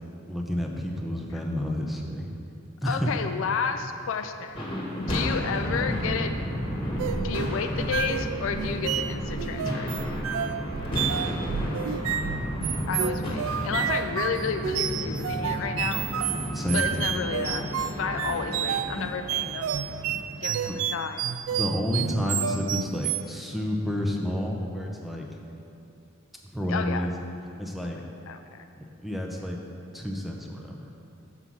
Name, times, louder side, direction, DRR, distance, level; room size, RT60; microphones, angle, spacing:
voice 1, 0.3-2.3 2.8-3.1 16.5-16.9 20.1-20.2 20.7-20.8 21.5-25.3 26.5-27.1 27.6-28.0 28.8-29.6 29.9-30.9, equal, ahead, 0 dB, 0.7 m, -30 dB
voice 2, 2.8-4.7 5.1-6.4 7.1-10.0 12.9-16.0 16.7-17.7 17.9-19.8 20.4-21.3 26.7-27.1 28.3-28.7, left 6 dB, 65° left, 8 dB, 0.4 m, -31 dB
sound 1, 4.5-20.9, equal, 25° left, 1.5 m, -32 dB
sound 2, 7.0-23.4, right 9 dB, 65° right, 0.3 m, -31 dB
7.0 x 5.7 x 6.1 m, 2.7 s
head